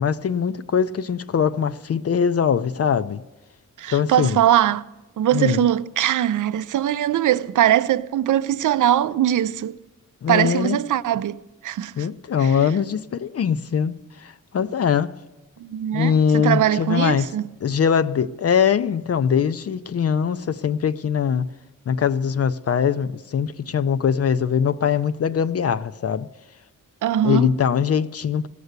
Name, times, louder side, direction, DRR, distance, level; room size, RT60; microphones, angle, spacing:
voice 1, 0.0-3.2 3.9-4.4 5.3-5.7 10.2-10.8 12.0-15.1 15.9-17.3 17.6-21.5 21.9-26.3 27.2-28.5, left 7 dB, 45° left, 0.4 m, -22 dB
voice 2, 3.8-4.9 5.2-9.8 10.3-12.1 12.4-12.6 15.6-17.5 27.0-27.5, right 11 dB, 65° right, 0.5 m, -21 dB
17.5 x 6.8 x 8.0 m
wide cardioid pair, 105°, 33 cm